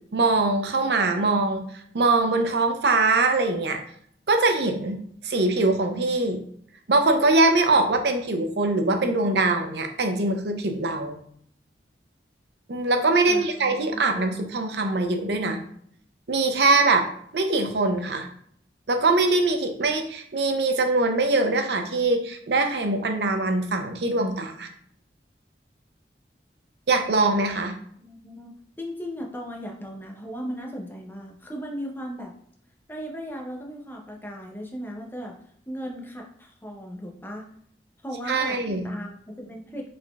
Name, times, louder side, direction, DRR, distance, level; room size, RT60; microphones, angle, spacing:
voice 1, 0.1-1.7 1.9-3.8 4.3-5.0 5.2-6.4 6.9-11.2 12.7-15.6 16.3-17.1 17.3-18.3 18.9-24.7 26.9-27.8 38.3-38.9, right 3 dB, 65° right, 6 dB, 0.6 m, -22 dB
voice 2, 13.3-14.2 28.0-32.3 32.9-35.3 35.7-37.4 38.0-40.0, equal, 10° left, 0 dB, 0.6 m, -37 dB
5.0 x 4.0 x 2.3 m, 0.64 s
head